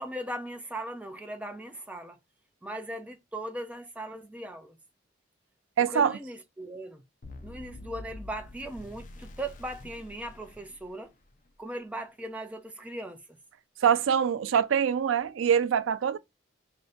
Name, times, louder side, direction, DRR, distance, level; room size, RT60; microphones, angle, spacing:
voice 1, 0.0-2.2 2.6-4.8 5.9-7.0 7.4-11.1 11.6-13.2, right 1 dB, 5° right, 0.5 m, -38 dB
voice 2, 5.8-6.2 13.8-16.2, right 8 dB, 90° right, 0.4 m, -24 dB
sound 1, 7.2-11.4, left 2 dB, 40° left, 0.5 m, -46 dB
3.3 x 2.6 x 3.7 m
head